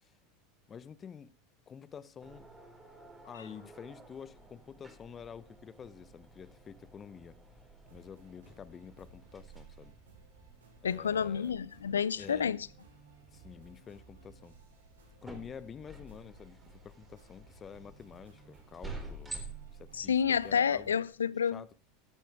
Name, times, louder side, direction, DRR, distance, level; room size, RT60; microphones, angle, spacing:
voice 1, 0.7-1.3 1.7-2.5 3.3-7.4 7.9-9.9 10.8-11.5 12.2-12.5 13.3-14.6 15.2-19.4 19.7-21.0 21.5-21.7, left 7 dB, 30° left, 0.9 m, -48 dB
sound 1, 2.2-21.1, right 3 dB, 10° right, 3.8 m, -51 dB
sound 2, 7.9-21.0, right 5 dB, 75° right, 5.0 m, -60 dB
voice 2, 10.8-12.6 20.0-21.6, left 7 dB, 80° left, 0.6 m, -29 dB
14.5 x 13.5 x 3.5 m
figure-of-eight pair, 80°, 0 cm